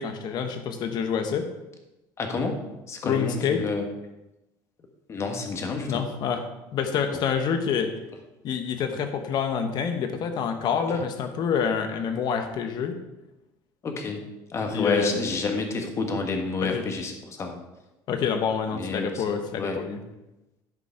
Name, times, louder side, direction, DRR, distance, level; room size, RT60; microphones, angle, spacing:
voice 1, 0.0-1.5 3.0-3.6 5.9-6.4 6.7-7.9 8.4-13.0 14.7-15.2 16.6-16.8 18.1-20.0, left 7 dB, 55° left, 7 dB, 1.2 m, -27 dB
voice 2, 2.2-2.6 2.9-3.8 5.1-6.1 13.8-14.2 14.5-17.6 18.7-19.2 19.6-19.8, left 4 dB, 30° left, 4 dB, 1.5 m, -29 dB
12.0 x 5.2 x 4.5 m, 0.98 s
cardioid pair, 125°, 9 cm